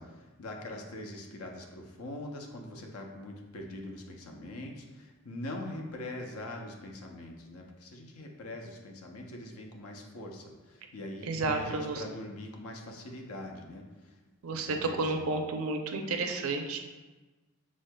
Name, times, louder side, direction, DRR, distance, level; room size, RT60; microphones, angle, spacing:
voice 1, 0.0-14.2 14.5-15.3, left 1 dB, 85° left, 2 dB, 0.6 m, -43 dB
voice 2, 11.3-12.0 14.4-16.8, right 3 dB, 75° right, 4 dB, 0.5 m, -31 dB
6.3 x 3.6 x 2.2 m, 1.2 s
head